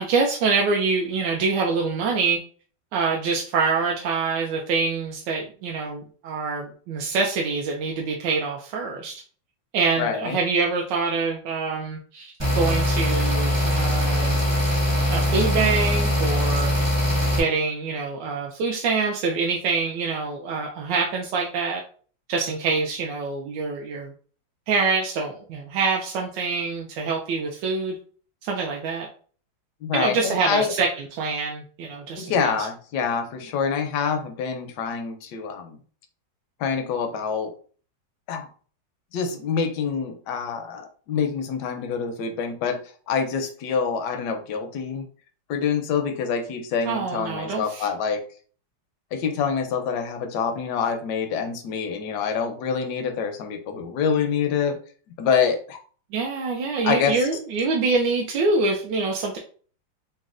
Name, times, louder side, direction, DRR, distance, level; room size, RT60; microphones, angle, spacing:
voice 1, 0.0-2.4 2.9-9.2 9.7-14.5 15.1-16.7 17.3-21.8 22.3-24.1 24.7-28.0 28.4-29.1 29.9-32.5 46.9-47.9 56.1-59.4, right 4 dB, 75° right, 0 dB, 1.1 m, -25 dB
voice 2, 10.0-10.4 29.8-30.7 32.2-35.8 36.6-37.5 38.3-38.5 39.1-45.1 45.5-48.2 49.1-54.8 55.2-55.8 56.8-57.3, left 6 dB, 75° left, 5 dB, 1.0 m, -26 dB
sound 1, 12.4-17.4, equal, 25° right, 0.5 m, -22 dB
4.0 x 2.1 x 2.4 m, 0.42 s
omnidirectional pair, 2.2 m